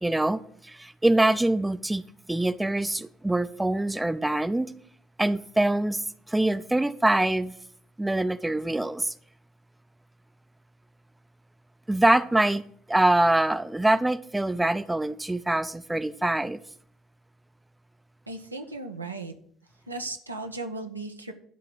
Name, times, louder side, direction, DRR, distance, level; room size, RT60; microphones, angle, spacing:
voice 1, 0.0-2.0 2.3-4.7 5.2-6.0 6.3-7.5 8.0-9.1 11.9-12.6 12.9-16.6, right 1 dB, 10° right, 0.5 m, -24 dB
voice 2, 18.3-19.3 19.9-21.3, right 2 dB, 90° right, 0.6 m, -36 dB
11.5 x 3.8 x 7.5 m
figure-of-eight pair, 55°, 0 cm